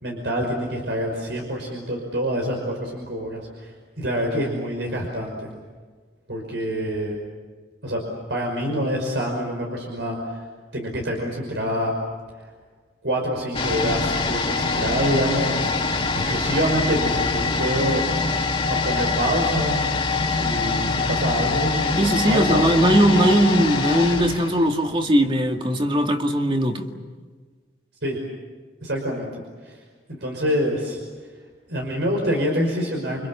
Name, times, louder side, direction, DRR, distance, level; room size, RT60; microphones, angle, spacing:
voice 1, 0.0-5.5 6.3-7.2 7.8-8.0 8.3-10.4 10.7-11.9 12.4-12.5 13.0-15.7 16.3-18.0 18.7-19.8 20.3-22.7 28.0-28.2 28.8-29.8 30.1-31.0 31.7-33.3, equal, 85° right, 5.7 m, -26 dB
sound 1, 13.5-25.3 25.6-25.7, left 3 dB, 30° left, 2.2 m, -24 dB
voice 2, 22.0-26.9, equal, 30° right, 2.2 m, -19 dB
29.5 x 25.5 x 7.4 m
head